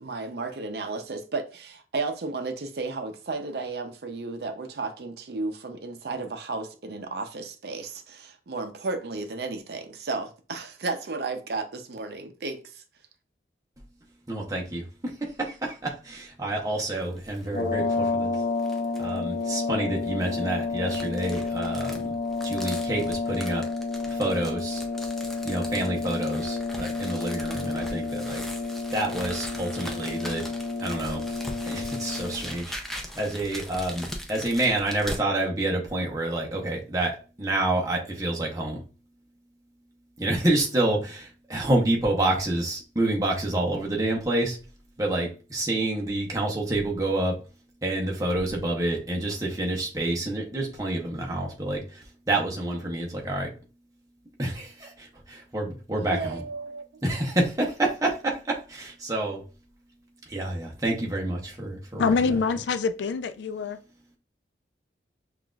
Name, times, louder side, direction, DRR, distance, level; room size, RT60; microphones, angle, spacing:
voice 1, 0.0-12.8 56.0-56.8, right 3 dB, 60° right, 0.5 m, -33 dB
voice 2, 14.3-18.4 19.0-22.1 22.4-23.7 24.1-24.8 25.4-28.4 28.9-30.5 30.8-31.2 31.7-38.8 40.2-44.6 45.0-47.4 47.8-53.5 54.4-56.4 57.0-59.4 60.3-62.4, right 1 dB, 20° right, 0.8 m, -28 dB
sound 1, 16.9-17.5 17.9-18.0 18.6-19.2 20.0-35.2, equal, ahead, 0.4 m, -40 dB
sound 2, 17.4-32.6, left 3 dB, 60° left, 0.8 m, -30 dB
voice 3, 62.0-63.8, left 5 dB, 80° left, 0.3 m, -25 dB
5.7 x 2.5 x 2.3 m
head